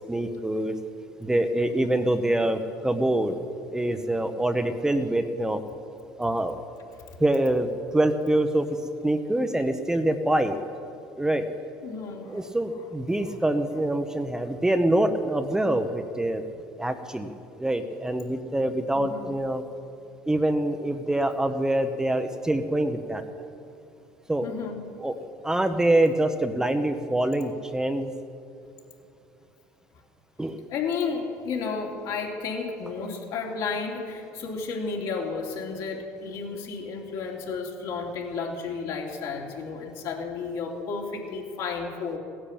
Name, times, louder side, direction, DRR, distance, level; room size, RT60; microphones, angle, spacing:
voice 1, 0.1-0.7 1.2-3.4 3.7-5.6 6.2-6.5 7.2-8.7 9.0-10.6 11.2-11.5 12.3-16.4 16.8-19.6 20.3-23.2 24.3-24.5 25.0-25.1 25.4-28.1 30.4-30.6, right 1 dB, 10° right, 7 dB, 0.8 m, -25 dB
voice 2, 11.8-12.4 18.9-19.3 24.4-24.8 30.7-42.2, left 5 dB, 65° left, -1 dB, 3.1 m, -32 dB
16.0 x 10.0 x 8.8 m, 2.7 s
supercardioid pair, 105°, 7 cm